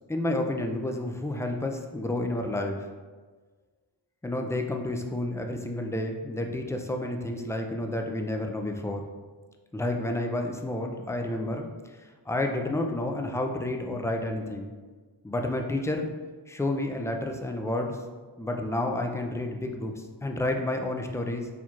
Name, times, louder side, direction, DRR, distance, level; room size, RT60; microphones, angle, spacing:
voice 1, 0.1-2.8 4.2-9.0 9.7-12.0 12.3-14.7 15.2-16.1 16.5-18.0 18.4-21.5, left 1 dB, 5° left, 3 dB, 0.3 m, -30 dB
4.4 x 2.9 x 2.4 m, 1.4 s
cardioid pair, 40°, 44 cm